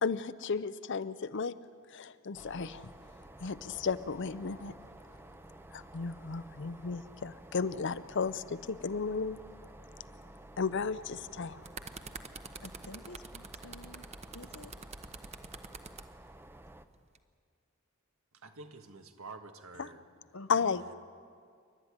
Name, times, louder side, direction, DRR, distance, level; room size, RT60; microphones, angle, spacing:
voice 1, 0.0-1.5 1.9-2.9 3.4-4.7 5.7-9.4 10.6-11.6 19.8-19.9 20.5-20.9, left 5 dB, 60° left, 0.6 m, -34 dB
sound 1, 2.3-16.8, right 1 dB, 10° right, 0.6 m, -52 dB
sound 2, 11.6-16.1 16.9-17.2, right 4 dB, 30° right, 1.0 m, -46 dB
voice 2, 12.6-14.1 14.3-14.7 20.3-20.7, left 2 dB, 85° left, 1.2 m, -50 dB
voice 3, 18.4-20.1 20.8-20.9, right 3 dB, 85° right, 1.6 m, -49 dB
28.5 x 12.0 x 9.7 m
head